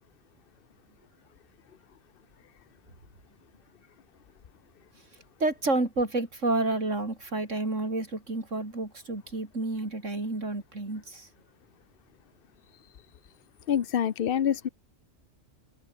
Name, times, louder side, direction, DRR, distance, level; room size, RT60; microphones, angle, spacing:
voice 1, 5.4-11.3, right 2 dB, 85° right, 4.9 m, -30 dB
voice 2, 13.7-14.7, left 9 dB, 55° left, 0.9 m, -26 dB
omnidirectional pair, 1.3 m